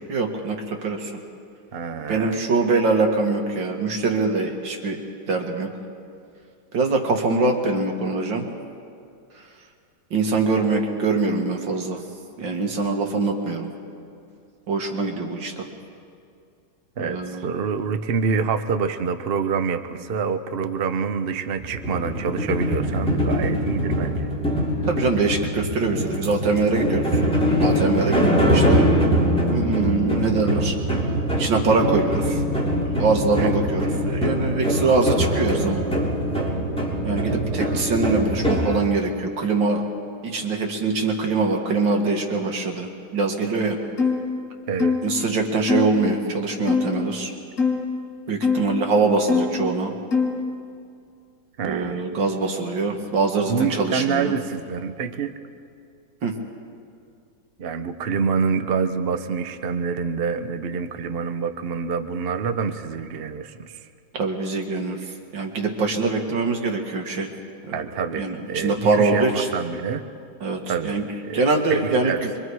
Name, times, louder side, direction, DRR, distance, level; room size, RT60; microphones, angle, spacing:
voice 1, 0.1-1.1 2.1-5.0 5.3-5.7 6.7-8.4 10.1-12.0 12.4-13.7 14.7-15.7 17.0-17.5 24.9-27.0 27.6-28.9 29.5-30.7 31.4-32.4 32.9-35.8 37.0-39.8 40.2-43.8 45.0-47.3 48.3-49.9 51.6-54.3 56.2-56.3 64.2-65.0 65.3-67.3 67.7-67.8 68.2-68.4 68.6-69.5 70.4-71.0 71.3-72.3, right 3 dB, 90° right, 2 dB, 2.5 m, -23 dB
voice 2, 1.7-2.4 17.0-24.3 33.4-33.6 44.7-45.0 51.6-52.0 53.5-55.3 57.6-63.8 67.7-70.0 70.7-71.4 71.7-72.3, right 6 dB, 50° right, 8 dB, 0.7 m, -26 dB
sound 1, 21.6-38.8, equal, 5° left, 2.8 m, -23 dB
sound 2, 44.0-44.2 44.8-45.1 45.7-45.9 46.7-47.0 47.6-47.8 48.4-48.7 49.3-49.6 50.1-50.4, left 5 dB, 45° left, 2.1 m, -22 dB
25.5 x 23.5 x 4.8 m, 2.4 s
omnidirectional pair, 2.0 m